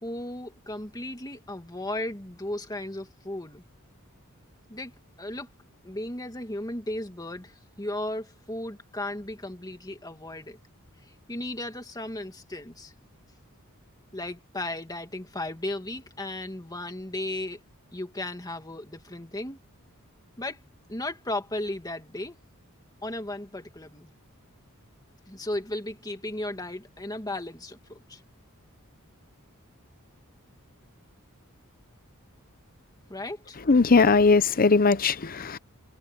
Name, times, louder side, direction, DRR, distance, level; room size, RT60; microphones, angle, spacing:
voice 1, 0.0-3.6 4.7-4.9 5.2-5.5 5.8-10.6 11.3-12.9 14.1-17.6 17.9-19.6 20.4-20.6 20.9-22.4 23.0-24.1 25.3-28.2 33.1-33.6, left 1 dB, 15° left, 2.2 m, -35 dB
voice 2, 33.7-35.6, left 4 dB, 40° left, 0.7 m, -19 dB
head